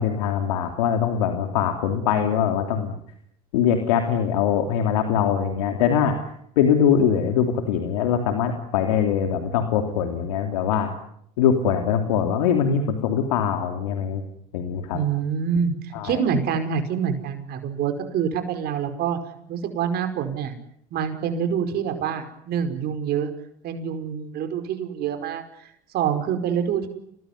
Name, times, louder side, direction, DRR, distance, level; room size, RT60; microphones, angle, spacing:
voice 1, 0.0-3.0 3.5-6.2 6.6-10.9 11.4-14.2 14.5-15.0 15.9-16.2, left 8 dB, 85° left, 5 dB, 3.2 m, -22 dB
voice 2, 14.9-19.2 19.5-20.5 20.9-23.3 23.6-26.9, right 7 dB, 55° right, 7 dB, 5.2 m, -26 dB
29.0 x 19.5 x 9.7 m, 0.71 s
hypercardioid pair, 85°, 19 cm